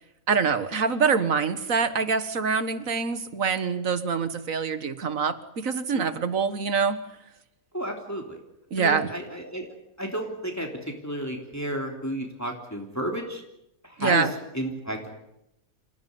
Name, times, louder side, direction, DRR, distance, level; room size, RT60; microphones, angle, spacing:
voice 1, 0.3-7.0 8.7-9.1 14.0-14.3, right 5 dB, 70° right, 12 dB, 1.9 m, -25 dB
voice 2, 7.7-8.4 8.8-9.7 10.0-13.4 13.8-14.3 14.5-15.2, right 1 dB, 10° left, 2 dB, 3.1 m, -32 dB
27.0 x 16.5 x 9.4 m, 0.84 s
omnidirectional pair, 1.5 m